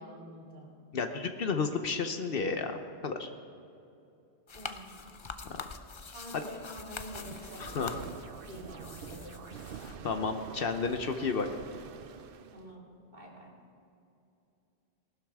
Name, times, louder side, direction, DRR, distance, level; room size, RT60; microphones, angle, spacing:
voice 1, 0.0-0.7 4.5-5.3 6.1-8.1 8.5-9.5 12.5-13.5, equal, 45° right, -3 dB, 2.6 m, -47 dB
voice 2, 0.9-3.3 7.6-8.0 10.0-11.5, left 4 dB, 60° left, 6 dB, 0.9 m, -32 dB
sound 1, 4.5-10.0, left 5 dB, 40° left, 0.5 m, -45 dB
sound 2, 7.0-12.7, right 7 dB, 65° right, 0.7 m, -47 dB
18.0 x 12.0 x 3.5 m, 2.7 s
omnidirectional pair, 1.1 m